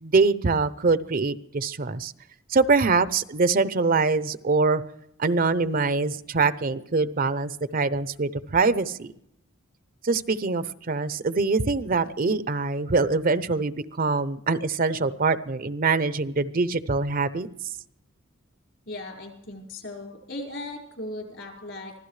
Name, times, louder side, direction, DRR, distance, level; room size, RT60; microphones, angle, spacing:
voice 1, 0.0-2.1 2.5-4.8 5.2-9.1 10.0-17.5, right 4 dB, 45° right, 14 dB, 0.7 m, -24 dB
voice 2, 18.9-21.9, left 2 dB, 65° left, 1 dB, 5.0 m, -37 dB
25.0 x 16.0 x 3.2 m, 0.77 s
head